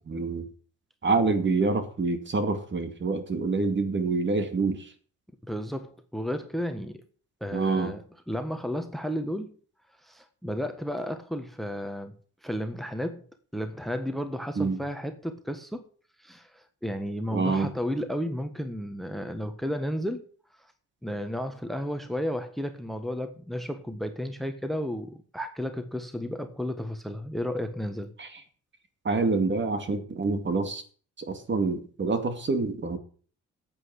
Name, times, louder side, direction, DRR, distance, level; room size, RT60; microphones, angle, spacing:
voice 1, 0.1-0.5 1.0-4.9 7.5-7.9 14.6-14.8 17.3-17.7 28.2-28.3 29.0-30.8 31.2-33.0, right 3 dB, 40° right, 2.4 m, -26 dB
voice 2, 5.4-7.0 7.4-9.5 10.0-12.1 12.4-13.3 13.5-15.9 16.2-20.2 20.6-20.7 21.0-28.1, equal, ahead, 1.5 m, -33 dB
8.9 x 8.5 x 8.2 m
cardioid pair, 90°, 30 cm